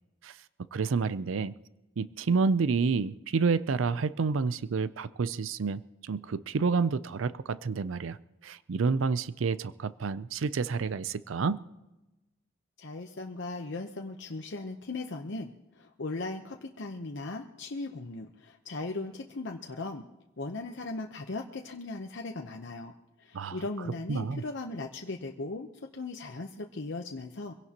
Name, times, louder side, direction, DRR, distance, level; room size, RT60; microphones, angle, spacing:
voice 1, 0.7-1.6 2.0-8.2 8.4-11.6 23.3-23.6 24.1-24.4, right 4 dB, 80° right, 16 dB, 0.5 m, -29 dB
voice 2, 12.8-20.0 20.4-22.9 23.2-27.5, left 2 dB, 65° left, 3 dB, 0.9 m, -38 dB
24.5 x 17.0 x 2.9 m, 1.0 s
head